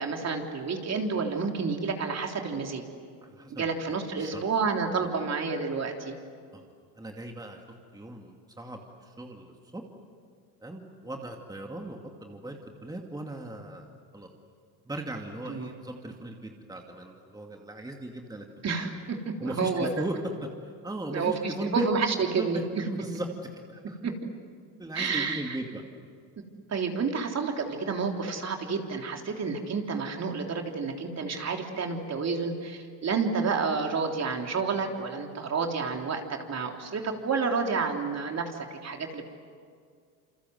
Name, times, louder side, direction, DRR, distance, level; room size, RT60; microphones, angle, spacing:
voice 1, 0.0-2.8 3.5-6.1 15.5-15.7 18.6-19.9 21.1-22.8 24.0-24.3 25.0-25.6 26.7-39.3, right 4 dB, 35° right, 3 dB, 3.5 m, -30 dB
voice 2, 3.2-3.8 4.2-4.4 5.0-5.1 6.5-6.6 6.9-7.6 7.9-9.8 10.6-14.3 14.9-18.8 19.4-21.9 22.4-23.3 23.7-24.0 24.8-25.8, right 1 dB, 10° right, 2 dB, 2.5 m, -38 dB
28.0 x 26.0 x 8.0 m, 2.1 s
supercardioid pair, 90°, 43 cm